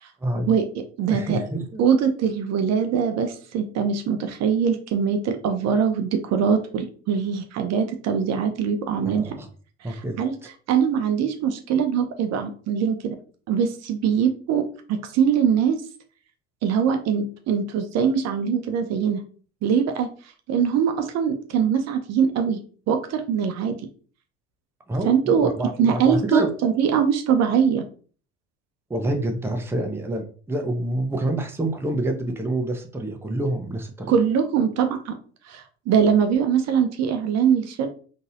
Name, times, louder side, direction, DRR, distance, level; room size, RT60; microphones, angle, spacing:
voice 1, 0.2-0.6 1.1-1.8 9.1-9.5 9.8-10.2 24.9-26.5 28.9-34.2, right 1 dB, 5° right, 4 dB, 0.6 m, -27 dB
voice 2, 1.0-1.4 1.8-9.4 9.8-10.4 10.7-13.2 13.5-15.8 16.6-19.2 19.6-20.1 20.5-22.6 22.9-23.8 25.1-25.5 25.8-27.8 34.1-35.1 35.5-37.9, right 7 dB, 50° right, 7 dB, 0.6 m, -22 dB
3.9 x 2.7 x 2.5 m, 0.41 s
hypercardioid pair, 70°, 35 cm